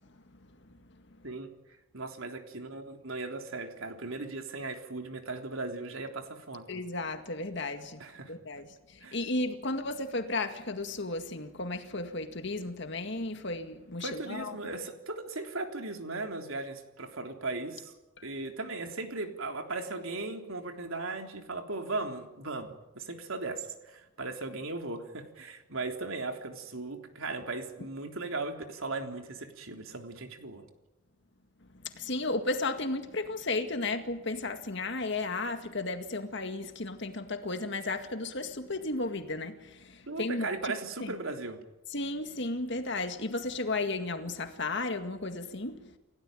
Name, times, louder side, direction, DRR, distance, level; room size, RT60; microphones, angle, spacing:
voice 1, 1.9-6.7 8.0-8.3 9.0-9.2 14.0-17.9 18.2-22.7 22.9-30.6 40.1-41.6, right 3 dB, 75° right, 3.6 m, -37 dB
voice 2, 6.7-8.0 8.3-14.6 18.2-18.3 31.8-40.7 41.0-41.1 41.9-45.9, left 2 dB, 55° left, 2.0 m, -34 dB
29.5 x 17.0 x 9.2 m
head